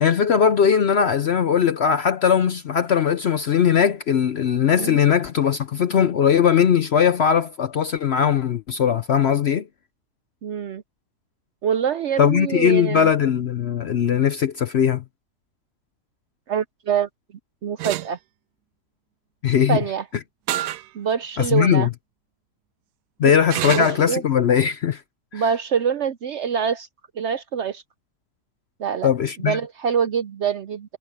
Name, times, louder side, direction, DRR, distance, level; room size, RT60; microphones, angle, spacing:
voice 1, 0.0-9.7 12.2-15.0 19.4-19.8 21.4-21.9 23.2-25.0 25.3-25.4 29.0-29.6, left 8 dB, 60° left, 0.7 m, -19 dB
voice 2, 10.4-10.8 11.6-13.1 16.5-17.1 17.6-18.2 19.7-20.0 20.9-21.9 23.2-23.3 23.6-24.2 25.3-26.9 27.2-27.8 28.8-29.1 29.4-31.0, right 7 dB, 60° right, 0.7 m, -25 dB
sound 1, 17.8-18.1 20.5-20.8 21.4-21.5 23.5-24.0, right 13 dB, 85° right, 1.2 m, -27 dB
omnidirectional pair, 1.7 m